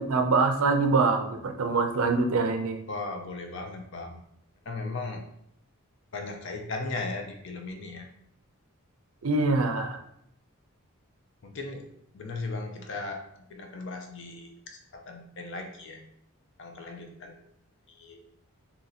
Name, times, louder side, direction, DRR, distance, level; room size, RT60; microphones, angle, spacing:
voice 1, 0.0-2.8 9.2-10.0, right 3 dB, 70° right, 5 dB, 0.5 m, -24 dB
voice 2, 2.9-4.2 4.7-5.3 6.1-8.1 11.4-11.9 12.1-16.0 16.6-17.5 17.9-18.2, left 3 dB, 55° left, 4 dB, 0.5 m, -37 dB
2.8 x 2.7 x 4.0 m, 0.75 s
head